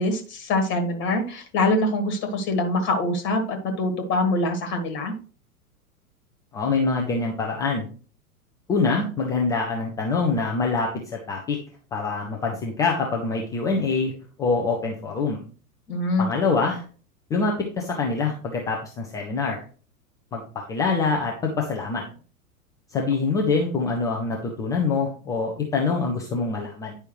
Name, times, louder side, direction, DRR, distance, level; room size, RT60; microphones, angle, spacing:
voice 1, 0.0-5.1 15.9-16.3, left 2 dB, 25° left, 6 dB, 1.5 m, -24 dB
voice 2, 6.5-7.9 8.7-11.6 11.9-14.1 14.4-15.4 16.2-16.8 17.3-19.6 20.3-20.4 20.7-22.0 22.9-27.0, left 4 dB, 10° left, 0 dB, 0.4 m, -25 dB
9.5 x 5.5 x 3.1 m, 0.39 s
figure-of-eight pair, 95°, 45 cm